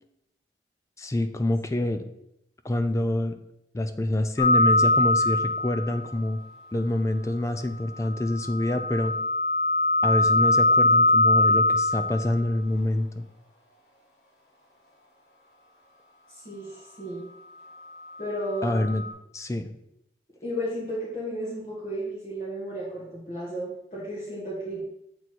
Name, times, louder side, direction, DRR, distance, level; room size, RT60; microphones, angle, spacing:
voice 1, 1.0-2.0 2.6-3.4 3.7-6.4 6.7-9.1 10.0-13.2 18.6-19.0 19.3-19.7, left 1 dB, 15° left, 8 dB, 0.4 m, -26 dB
sound 1, 4.4-6.0 8.0-12.4 18.3-19.1, left 2 dB, 75° left, 1.7 m, -22 dB
voice 2, 16.3-17.2 18.2-18.8 20.4-24.8, equal, 40° left, -7 dB, 1.7 m, -33 dB
8.0 x 4.2 x 4.5 m, 0.80 s
head